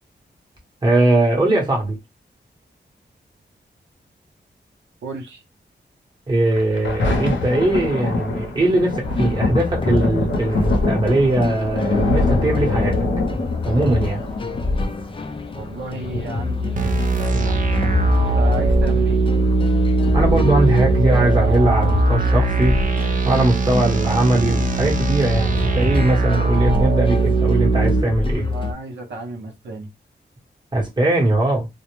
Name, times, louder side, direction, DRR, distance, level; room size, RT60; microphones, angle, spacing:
voice 1, 0.8-2.0 6.3-13.0 13.7-14.2 18.2-18.4 20.1-22.8 23.2-28.5 30.7-31.7, right 1 dB, 25° right, 1.0 m, -20 dB
voice 2, 5.0-5.4 15.5-17.7 18.3-19.2 28.5-29.9, right 2 dB, 80° right, 0.7 m, -33 dB
Thunder, 6.5-17.5 18.1-18.2, left 2 dB, 90° left, 0.6 m, -24 dB
sound 1, 9.0-28.7, left 3 dB, 30° left, 0.4 m, -26 dB
sound 2, 16.8-28.0, right 4 dB, 45° right, 0.4 m, -20 dB
2.2 x 2.0 x 3.0 m
wide cardioid pair, 120°, 18 cm